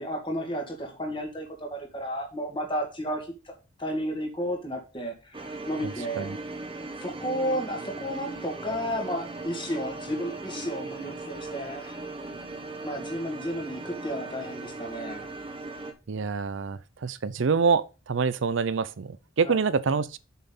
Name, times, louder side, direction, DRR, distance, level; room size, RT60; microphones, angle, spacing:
voice 1, 0.0-3.5 3.8-6.3 7.0-12.0 12.8-15.3 19.4-19.6, equal, 25° left, 2.2 m, -32 dB
sound 1, 5.3-15.9, right 2 dB, 25° right, 1.1 m, -38 dB
voice 2, 16.1-20.2, right 5 dB, 70° right, 0.5 m, -26 dB
7.1 x 5.7 x 5.5 m
head